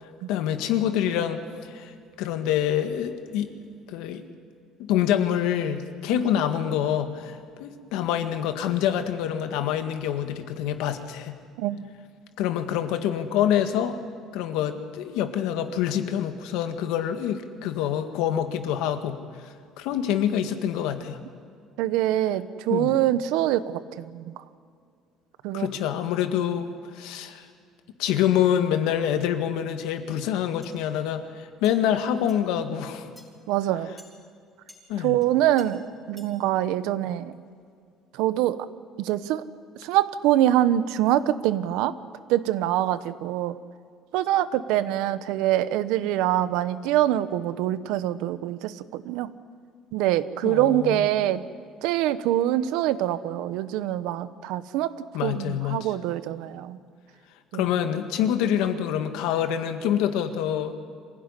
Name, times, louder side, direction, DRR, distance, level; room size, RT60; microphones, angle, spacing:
voice 1, 0.3-1.9 2.2-3.5 3.9-4.2 4.8-11.3 12.4-14.0 14.3-19.2 19.4-21.2 22.7-22.9 25.5-27.5 28.0-33.1 34.9-35.2 50.4-51.0 55.1-55.9 57.5-60.7, left 10 dB, 90° left, 7 dB, 1.8 m, -26 dB
voice 2, 21.8-24.3 25.4-25.7 33.5-33.9 35.0-37.3 38.2-38.6 39.0-39.4 39.8-41.9 42.3-43.6 44.1-49.3 49.9-51.4 51.8-54.9 55.2-56.8 57.5-57.7, right 13 dB, 90° right, 14 dB, 1.0 m, -24 dB
sound 1, 30.6-30.8 31.6-31.8 32.3-32.4 33.2-33.3 34.0-34.1 34.7-34.8 35.2-35.3 35.6-35.7 36.2-36.3, left 1 dB, ahead, 3.9 m, -50 dB
25.0 x 16.0 x 9.9 m, 2.2 s
cardioid pair, 160°, 0 cm